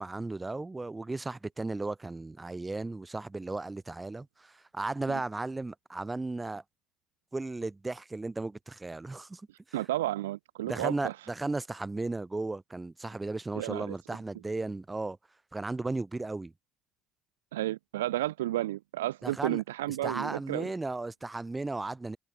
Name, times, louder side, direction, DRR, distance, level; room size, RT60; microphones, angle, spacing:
voice 1, 0.0-6.6 7.3-9.4 10.7-15.2 15.5-16.5 19.2-19.6 19.9-22.2, right 2 dB, 20° right, 2.7 m, -35 dB
voice 2, 9.7-11.1 13.6-14.0 17.5-20.7, right 15 dB, 80° right, 0.6 m, -32 dB
hypercardioid pair, 50°, 0 cm